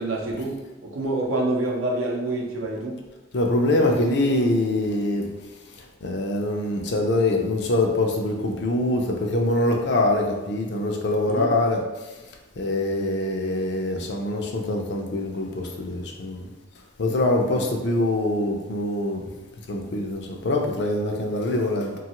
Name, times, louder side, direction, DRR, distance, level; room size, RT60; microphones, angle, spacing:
voice 1, 0.0-3.0 11.3-11.5 17.5-17.6, right 2 dB, 90° right, -1 dB, 0.6 m, -27 dB
voice 2, 3.3-5.3 6.0-11.8 12.6-16.5 17.0-19.3 19.7-22.0, left 1 dB, 55° left, 2 dB, 0.4 m, -24 dB
3.1 x 2.3 x 2.9 m, 1.1 s
head